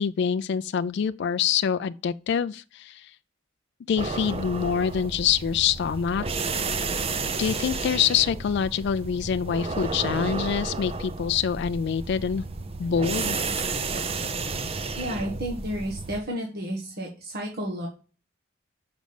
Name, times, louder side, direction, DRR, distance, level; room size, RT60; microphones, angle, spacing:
voice 1, 0.0-3.2 3.9-6.6 7.4-12.4 12.8-13.4, left 7 dB, 60° left, 0.3 m, -25 dB
sound 1, 4.0-16.2, right 3 dB, 30° right, 0.5 m, -32 dB
voice 2, 15.0-17.9, equal, 50° right, 1.3 m, -32 dB
6.3 x 5.1 x 6.8 m
head